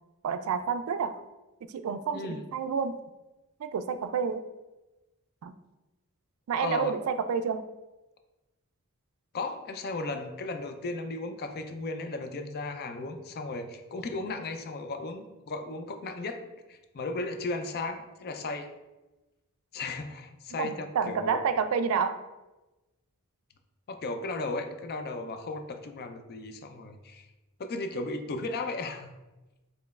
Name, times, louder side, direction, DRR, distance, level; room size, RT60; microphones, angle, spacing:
voice 1, 0.2-1.2 1.7-3.0 3.6-4.4 5.4-5.5 6.5-7.6 20.6-22.2, right 6 dB, 70° right, 11 dB, 0.3 m, -29 dB
voice 2, 2.1-2.4 6.6-7.0 9.3-16.4 16.7-18.7 19.7-21.4 23.9-27.3 27.6-29.1, left 3 dB, 45° left, 7 dB, 0.4 m, -35 dB
5.0 x 3.1 x 2.3 m, 1.1 s
head